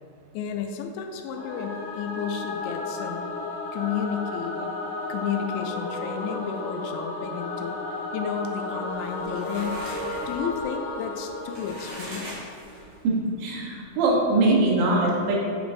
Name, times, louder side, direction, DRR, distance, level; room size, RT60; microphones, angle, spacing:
voice 1, 0.3-3.3 3.7-4.7 5.0-7.8 8.1-9.8 10.3-12.3, left 7 dB, 85° left, 4 dB, 2.8 m, -32 dB
Singing / Musical instrument, 1.3-12.6, left 2 dB, 70° left, 3.4 m, -33 dB
sound 1, 8.9-13.1, equal, 55° right, 1.4 m, -41 dB
voice 2, 13.0-15.4, right 2 dB, 85° right, -3 dB, 3.4 m, -22 dB
8.5 x 5.0 x 2.6 m, 2.3 s
omnidirectional pair, 5.0 m